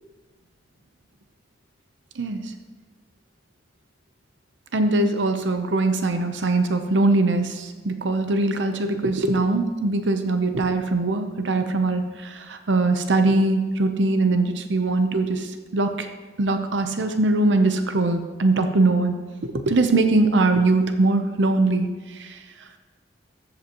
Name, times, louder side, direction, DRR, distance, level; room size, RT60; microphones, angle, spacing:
voice 1, 2.2-2.5 4.7-16.1 16.4-19.2 19.4-22.4, right 2 dB, 80° right, 7 dB, 0.7 m, -22 dB
13.5 x 8.0 x 3.0 m, 1.4 s
head